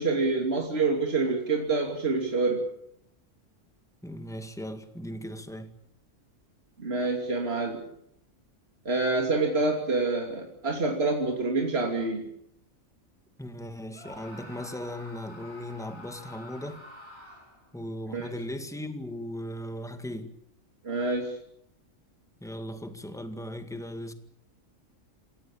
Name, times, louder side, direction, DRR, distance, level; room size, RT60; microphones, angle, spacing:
voice 1, 0.0-2.6 6.8-7.8 8.8-12.2 18.1-18.3 20.8-21.4, right 3 dB, 50° right, 3.2 m, -27 dB
voice 2, 4.0-5.7 13.4-16.8 17.7-20.3 22.4-24.1, left 1 dB, ahead, 1.9 m, -37 dB
Screaming, 13.9-17.7, left 1 dB, 20° left, 6.9 m, -47 dB
27.0 x 17.5 x 8.7 m
omnidirectional pair, 1.3 m